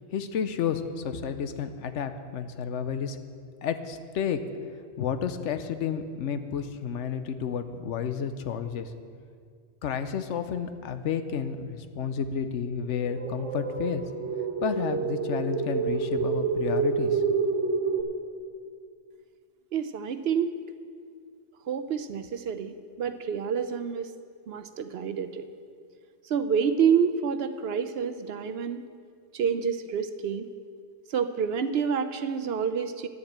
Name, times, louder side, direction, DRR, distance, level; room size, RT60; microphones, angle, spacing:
voice 1, 0.1-3.2 3.6-4.4 5.0-8.9 9.8-14.0 14.6-17.2, left 7 dB, 80° left, 9 dB, 1.0 m, -31 dB
sound 1, 13.0-18.0, right 5 dB, 85° right, 1.5 m, -28 dB
voice 2, 19.7-20.5 21.7-24.1 24.5-25.5 26.2-28.8 29.3-30.5 31.1-33.1, right 7 dB, 65° right, 10 dB, 0.7 m, -28 dB
11.0 x 7.3 x 8.0 m, 2.2 s
omnidirectional pair, 1.2 m